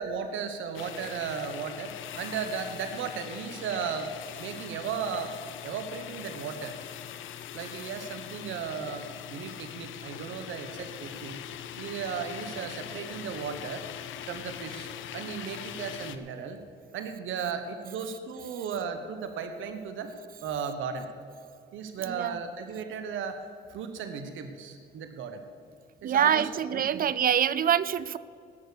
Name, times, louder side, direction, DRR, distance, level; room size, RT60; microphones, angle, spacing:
voice 1, 0.0-4.1 4.4-5.3 5.6-6.8 7.5-11.4 11.8-13.9 14.3-16.6 16.9-20.1 20.4-21.1 21.7-23.4 23.7-25.4 26.0-27.0, right 6 dB, 80° right, 8 dB, 1.1 m, -35 dB
sound 1, 0.7-16.2, left 10 dB, 80° left, 0.8 m, -42 dB
voice 2, 22.1-22.4 26.0-28.2, right 9 dB, 45° right, 17 dB, 0.5 m, -25 dB
18.5 x 6.4 x 6.6 m, 2.4 s
cardioid pair, 90°, 20 cm